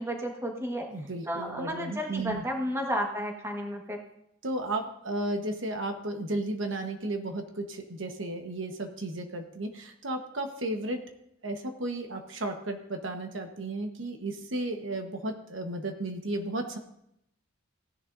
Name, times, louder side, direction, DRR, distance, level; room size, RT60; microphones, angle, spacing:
voice 1, 0.0-0.9 1.3-4.0, equal, 15° right, 1 dB, 1.4 m, -32 dB
voice 2, 0.9-2.4 4.4-11.0 11.4-16.8, right 2 dB, 70° right, 5 dB, 1.2 m, -34 dB
16.5 x 10.5 x 2.6 m, 0.78 s
head